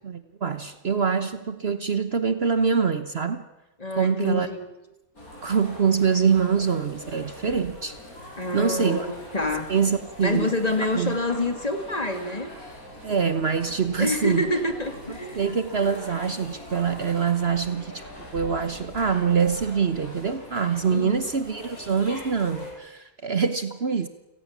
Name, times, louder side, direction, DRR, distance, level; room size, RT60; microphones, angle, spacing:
voice 1, 0.0-3.4 4.0-4.5 5.4-7.9 8.5-9.1 9.7-10.5 10.9-11.2 13.0-14.5 15.1-18.0 18.3-24.1, right 6 dB, 50° right, 1.2 m, -24 dB
voice 2, 3.8-4.7 8.4-9.7 10.2-12.5 14.0-15.5 20.9-21.3, left 2 dB, 25° left, 2.4 m, -27 dB
sound 1, 5.2-22.7, left 1 dB, 90° left, 8.2 m, -42 dB
30.0 x 18.5 x 7.3 m
omnidirectional pair, 1.5 m